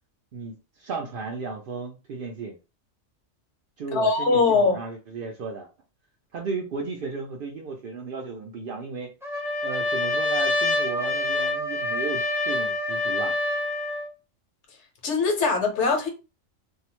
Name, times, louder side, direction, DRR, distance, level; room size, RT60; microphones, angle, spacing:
voice 1, 0.3-2.6 3.8-5.7 6.3-9.1 9.6-13.4, right 4 dB, 65° right, 0.5 m, -34 dB
voice 2, 3.9-4.8 15.0-16.1, left 4 dB, 65° left, 1.1 m, -21 dB
Trumpet, 9.2-14.1, left 2 dB, 5° right, 0.5 m, -26 dB
2.6 x 2.0 x 2.9 m
omnidirectional pair, 1.4 m